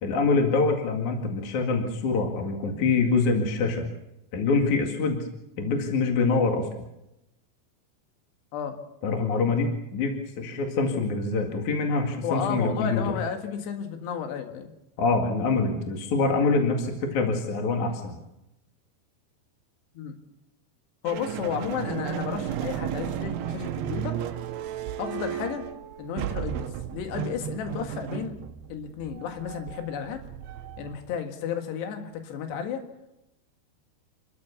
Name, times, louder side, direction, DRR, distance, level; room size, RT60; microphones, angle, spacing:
voice 1, 0.0-3.9 4.3-5.2 5.6-6.8 9.0-13.0 15.0-18.1, left 4 dB, 50° left, 3 dB, 3.1 m, -25 dB
voice 2, 12.2-14.7 20.0-20.2 21.0-24.2 25.0-25.7 26.0-28.4 28.7-30.2 30.8-32.8, left 7 dB, 75° left, 5 dB, 3.9 m, -32 dB
sound 1, 21.1-31.2, right 11 dB, 75° right, 2.7 m, -34 dB
28.5 x 13.0 x 7.0 m, 0.90 s
omnidirectional pair, 5.0 m